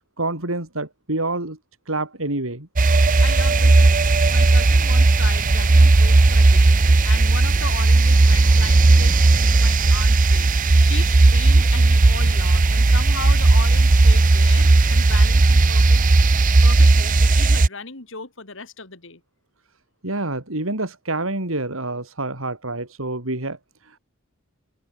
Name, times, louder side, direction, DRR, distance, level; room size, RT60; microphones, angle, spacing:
voice 1, 0.2-1.6 1.9-2.7 20.0-24.0, right 2 dB, 90° right, 4.8 m, -27 dB
sound 1, 2.8-17.7, right 2 dB, 40° right, 0.7 m, -15 dB
voice 2, 3.2-10.5 10.8-16.0 16.6-19.2, left 4 dB, 70° left, 3.2 m, -36 dB
open air
head